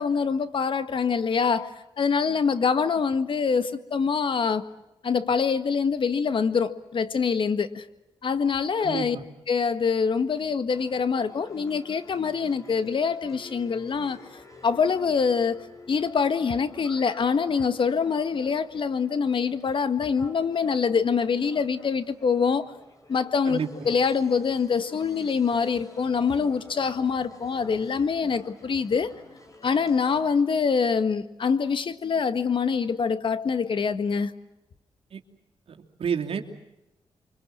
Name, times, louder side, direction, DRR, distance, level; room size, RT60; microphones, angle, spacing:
voice 1, 0.0-4.7 5.0-7.9 8.2-9.2 9.5-14.2 14.6-22.7 23.1-23.6 23.8-29.1 29.6-34.3, left 5 dB, 60° left, 1.7 m, -25 dB
voice 2, 8.8-9.2 23.5-23.9 35.1-35.2 35.7-36.4, right 7 dB, 75° right, 2.9 m, -30 dB
sound 1, 10.7-30.4, left 2 dB, 35° left, 6.3 m, -50 dB
29.5 x 24.5 x 7.6 m
cardioid pair, 75°, 10 cm